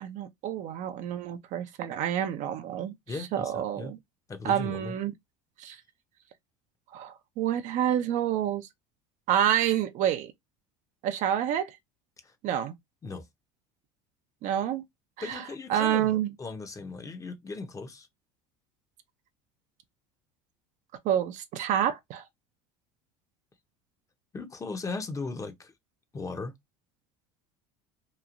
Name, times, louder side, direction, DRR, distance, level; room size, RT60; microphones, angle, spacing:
voice 1, 0.0-2.9 3.3-4.0 4.4-5.1 5.6-5.8 6.9-8.7 9.3-10.3 11.0-11.7 12.4-12.7 14.4-14.8 15.2-15.4 15.7-16.3 21.0-22.2, right 10 dB, 55° right, 0.5 m, -28 dB
voice 2, 3.1-3.9 4.3-4.9 12.2-12.3 13.0-13.2 15.2-16.1 16.4-18.1 24.3-25.7 26.1-26.5, left 3 dB, 20° left, 0.7 m, -37 dB
3.0 x 2.4 x 2.4 m
supercardioid pair, 95°, 15 cm